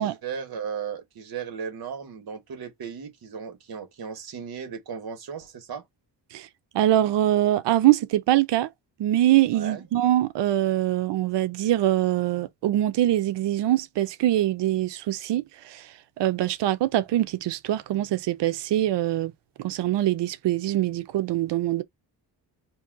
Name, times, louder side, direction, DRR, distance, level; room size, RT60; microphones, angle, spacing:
voice 1, 0.0-5.8 9.5-9.9, right 7 dB, 60° right, 1.3 m, -36 dB
voice 2, 6.7-8.7 9.0-19.3 19.6-21.8, right 13 dB, 75° right, 0.6 m, -23 dB
2.8 x 2.6 x 3.6 m
wide cardioid pair, 150°, 42 cm